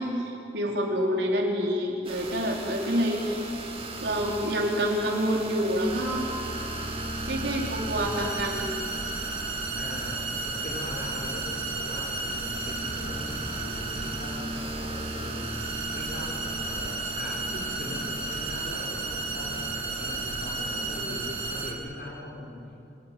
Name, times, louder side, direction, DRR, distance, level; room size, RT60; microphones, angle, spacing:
voice 1, 0.0-3.4 4.0-6.3 7.3-8.7 21.0-21.2, equal, 80° right, 0 dB, 4.6 m, -27 dB
sound 1, 2.0-21.7, right 2 dB, 35° right, 2.9 m, -33 dB
voice 2, 9.7-15.6 15.9-22.9, left 1 dB, 55° left, -2 dB, 6.0 m, -40 dB
26.5 x 18.5 x 9.6 m, 2.7 s
head